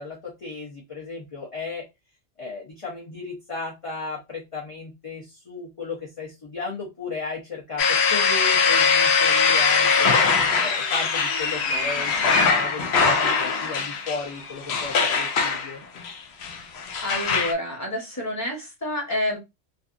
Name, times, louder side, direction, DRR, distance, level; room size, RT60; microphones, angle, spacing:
voice 1, 0.0-1.9 2.4-10.2 10.6-15.8, left 4 dB, 35° left, 0.6 m, -35 dB
sound 1, 7.8-17.5, left 5 dB, 70° left, 0.8 m, -21 dB
voice 2, 17.0-19.4, left 1 dB, 15° left, 1.0 m, -28 dB
2.6 x 2.4 x 2.4 m
omnidirectional pair, 1.2 m